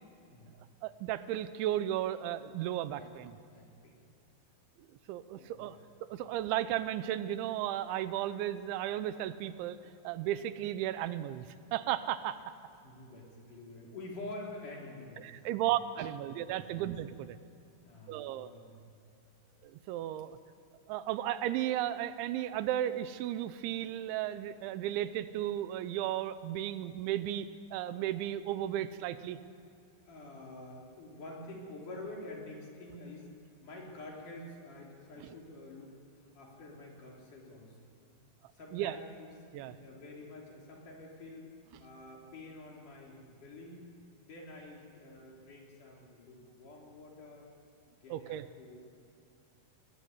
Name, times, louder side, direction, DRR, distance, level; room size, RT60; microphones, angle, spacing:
voice 1, 0.8-3.3 4.9-5.8 6.1-9.8 10.0-11.5 11.7-12.4 15.2-17.4 18.1-18.5 19.6-20.4 20.9-29.4 38.7-39.0 39.5-39.7 48.1-48.4, right 12 dB, 85° right, 13 dB, 3.1 m, -34 dB
voice 2, 3.4-4.0 5.3-5.8 12.8-15.3 15.6-15.8 16.2-16.4 16.7-16.9 17.8-19.0 30.0-33.3 33.6-36.0 36.3-37.9 38.5-41.5 41.8-43.9 44.3-47.5 48.0-48.8, left 2 dB, 45° left, -2 dB, 4.6 m, -48 dB
21.5 x 19.0 x 9.5 m, 2.5 s
omnidirectional pair, 5.3 m